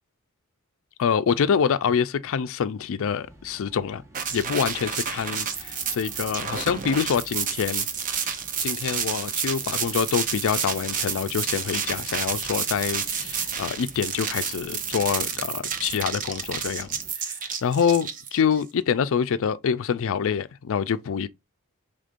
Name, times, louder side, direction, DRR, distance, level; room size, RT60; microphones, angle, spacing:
voice 1, 1.0-4.0 4.3-7.9 8.6-17.0 17.6-21.3, left 7 dB, 60° left, 0.4 m, -26 dB
sound 1, 3.0-17.1, right 1 dB, 15° right, 1.0 m, -50 dB
sound 2, 4.1-18.6, right 7 dB, 35° right, 0.6 m, -30 dB
5.0 x 3.6 x 2.5 m
head